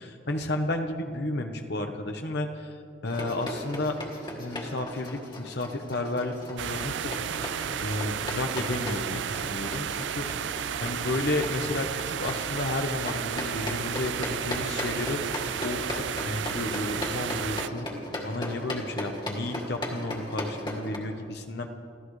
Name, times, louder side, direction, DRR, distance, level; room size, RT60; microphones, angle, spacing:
voice 1, 0.0-4.0 4.4-7.1 7.8-10.2 10.8-17.9 18.2-21.7, left 2 dB, 60° left, 5 dB, 1.1 m, -32 dB
sound 1, 3.1-21.0, left 1 dB, 25° left, 2.3 m, -37 dB
sound 2, 6.6-17.7, right 9 dB, 75° right, 0.4 m, -33 dB
28.0 x 15.0 x 3.3 m, 2.3 s
head